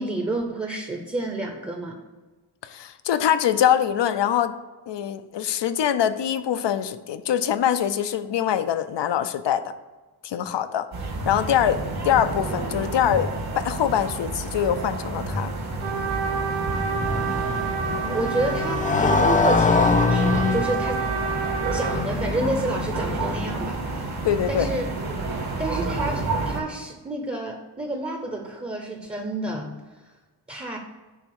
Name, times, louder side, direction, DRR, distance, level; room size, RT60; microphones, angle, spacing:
voice 1, 0.0-2.0 18.0-21.0 21.7-24.2 24.5-24.8 25.6-29.8 30.5-30.8, right 2 dB, 15° right, 2 dB, 0.8 m, -29 dB
voice 2, 2.6-4.5 4.9-9.6 10.2-10.9 11.2-13.3 13.6-15.5 24.2-24.7, left 9 dB, 75° left, 11 dB, 0.7 m, -23 dB
sound 1, 10.9-26.6, right 3 dB, 60° right, 1.7 m, -30 dB
Motorcycle, 15.7-23.8, left 4 dB, 20° left, 0.3 m, -25 dB
Trumpet, 15.8-22.0, right 4 dB, 80° right, 1.2 m, -29 dB
10.5 x 3.5 x 6.4 m, 1.2 s
wide cardioid pair, 165°, 43 cm